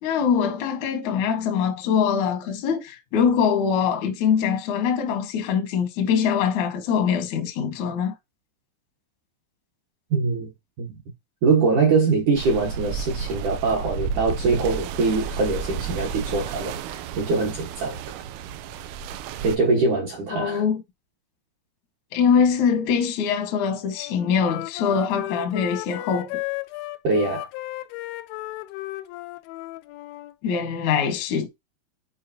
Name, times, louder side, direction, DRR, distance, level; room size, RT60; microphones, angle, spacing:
voice 1, 0.0-8.1 20.3-20.8 22.1-26.4 30.4-31.5, left 7 dB, 65° left, 1.8 m, -23 dB
voice 2, 10.1-10.5 10.8-10.9 11.4-18.0 19.4-20.6 27.0-27.5, right 4 dB, 65° right, 2.0 m, -23 dB
sound 1, 12.4-19.6, right 6 dB, 90° right, 3.2 m, -32 dB
Wind instrument woodwind instrument, 24.0-30.3, left 18 dB, 85° left, 2.8 m, -34 dB
8.6 x 4.7 x 2.8 m
omnidirectional pair, 5.6 m